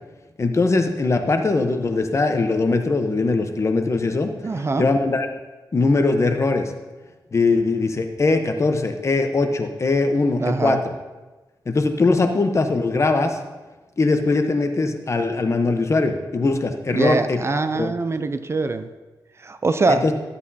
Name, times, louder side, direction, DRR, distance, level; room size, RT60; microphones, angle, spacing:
voice 1, 0.4-5.3 5.7-6.7 7.3-10.8 11.7-13.4 14.0-17.9 19.9-20.1, left 3 dB, 40° left, 6 dB, 0.9 m, -21 dB
voice 2, 4.4-4.9 10.4-10.8 16.9-18.9 19.4-20.0, right 3 dB, 35° right, 10 dB, 0.5 m, -23 dB
13.0 x 8.2 x 2.8 m, 1.2 s
cardioid pair, 80°, 8 cm